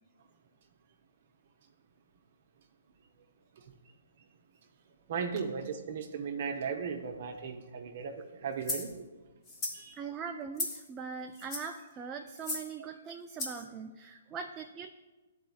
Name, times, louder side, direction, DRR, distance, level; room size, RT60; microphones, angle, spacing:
voice 1, 5.1-9.1 9.7-10.0 12.8-12.9, right 6 dB, 55° right, 4 dB, 0.7 m, -37 dB
sound 1, 8.6-8.9 9.5-9.8 10.6-10.9 11.3-11.8 12.4-12.7 13.4-13.6, left 2 dB, 25° left, 1.3 m, -36 dB
voice 2, 9.9-14.9, right 6 dB, 20° right, 3 dB, 0.3 m, -41 dB
11.0 x 4.3 x 2.3 m, 1.2 s
hypercardioid pair, 135°, 0 cm